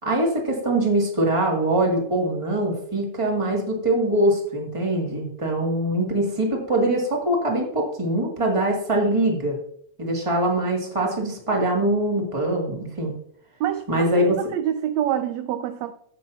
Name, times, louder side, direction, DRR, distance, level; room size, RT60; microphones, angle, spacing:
voice 1, 0.0-9.6 10.0-13.1 13.9-14.4, right 1 dB, 10° right, 1.8 m, -23 dB
voice 2, 13.6-15.9, right 10 dB, 80° right, 1.6 m, -26 dB
14.5 x 8.3 x 2.8 m
omnidirectional pair, 3.4 m